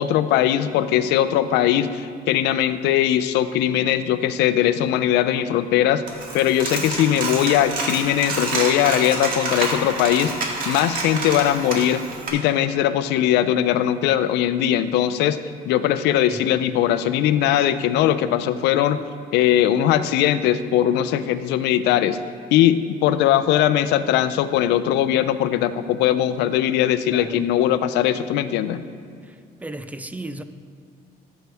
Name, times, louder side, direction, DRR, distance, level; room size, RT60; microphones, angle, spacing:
voice 1, 0.0-6.0 6.3-10.3 10.7-12.0 12.3-15.4 15.7-19.0 19.3-22.2 22.5-28.8, left 11 dB, 85° left, 0.5 m, -20 dB
Coin (dropping), 6.1-12.3, right 3 dB, 55° right, 1.9 m, -28 dB
voice 2, 27.1-27.5 29.2-30.4, right 1 dB, 10° right, 0.4 m, -35 dB
13.0 x 8.1 x 3.5 m
cardioid pair, 110°, 17 cm